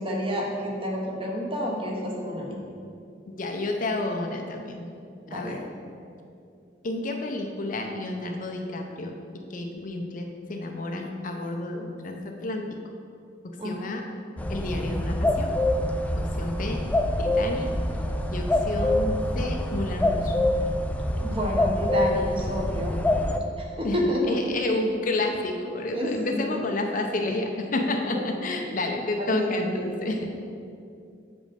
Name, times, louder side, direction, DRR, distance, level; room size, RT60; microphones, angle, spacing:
voice 1, 0.0-2.6 5.3-5.5 13.6-13.7 21.2-22.9 23.6-24.5 25.9-26.6 29.2-30.2, equal, 30° right, -1 dB, 1.1 m, -29 dB
voice 2, 3.3-4.9 5.3-5.6 6.8-9.2 9.5-12.7 13.6-14.0 14.5-15.6 16.2-16.8 17.2-17.7 18.3-20.4 23.8-30.3, left 2 dB, 45° left, 2 dB, 0.6 m, -30 dB
sound 1, 14.4-23.4, left 1 dB, 10° left, 0.3 m, -25 dB
7.6 x 5.2 x 5.1 m, 2.5 s
head